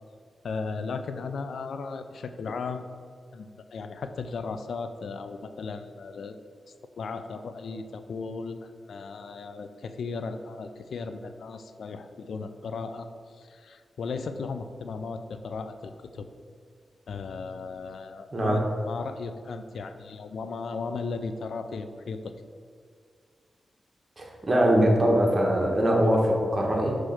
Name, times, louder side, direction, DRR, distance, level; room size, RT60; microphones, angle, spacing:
voice 1, 0.4-2.9 3.3-6.4 7.0-13.1 13.4-16.3 17.1-22.3, left 4 dB, 80° left, 9 dB, 0.4 m, -36 dB
voice 2, 24.2-27.0, right 1 dB, 35° right, 0 dB, 1.4 m, -22 dB
6.3 x 3.2 x 5.9 m, 2.1 s
cardioid pair, 50°, 0 cm